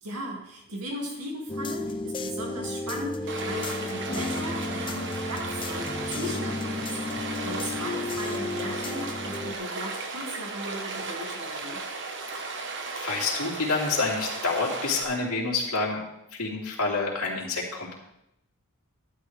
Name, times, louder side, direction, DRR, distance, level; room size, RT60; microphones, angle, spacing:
voice 1, 0.0-11.8, equal, 85° right, -1 dB, 2.3 m, -37 dB
sound 1, 1.5-9.5, left 2 dB, 20° left, 0.6 m, -33 dB
Stream, 3.3-15.0, right 3 dB, 55° right, 1.2 m, -35 dB
voice 2, 13.0-16.0 16.4-17.9, left 3 dB, 70° left, -4 dB, 3.2 m, -28 dB
12.0 x 11.0 x 3.4 m, 0.82 s
head